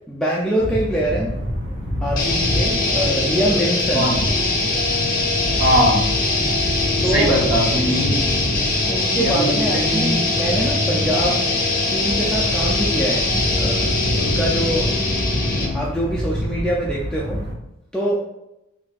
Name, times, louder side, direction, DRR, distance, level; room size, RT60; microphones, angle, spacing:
voice 1, 0.1-1.4 1.7-1.8 2.0-4.0 7.0-7.5 8.9-11.5 11.9-14.9 15.6-17.4 17.9-18.2, right 1 dB, 5° left, -5 dB, 0.3 m, -24 dB
sound 1, 0.6-17.5, equal, 20° right, 1.5 m, -28 dB
sound 2, 2.2-15.9, left 2 dB, 40° left, 0.7 m, -22 dB
voice 2, 5.6-6.2 7.0-8.2 9.2-10.3 11.2-11.3, equal, 65° right, -2 dB, 1.0 m, -21 dB
5.3 x 2.4 x 2.4 m, 0.88 s
head